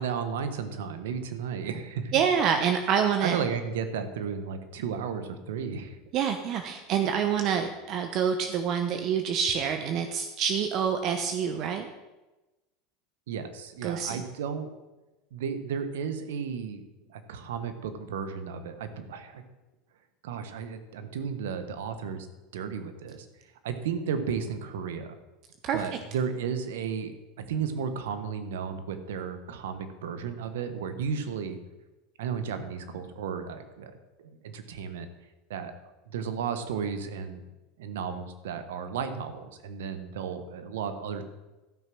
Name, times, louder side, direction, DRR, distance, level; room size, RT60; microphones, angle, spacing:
voice 1, 0.0-2.1 3.2-6.0 13.3-14.7 15.3-16.8 17.1-19.4 20.2-22.3 22.5-23.3 23.6-25.2 25.7-31.6 32.2-33.9 34.2-35.1 35.5-35.7 36.1-37.4 37.8-41.2, right 6 dB, 80° right, 9 dB, 1.2 m, -33 dB
voice 2, 2.1-3.4 6.1-11.9 13.8-14.2 25.6-25.8, right 7 dB, 50° right, 7 dB, 0.9 m, -27 dB
13.0 x 6.1 x 6.1 m, 1.1 s
hypercardioid pair, 100°, 0 cm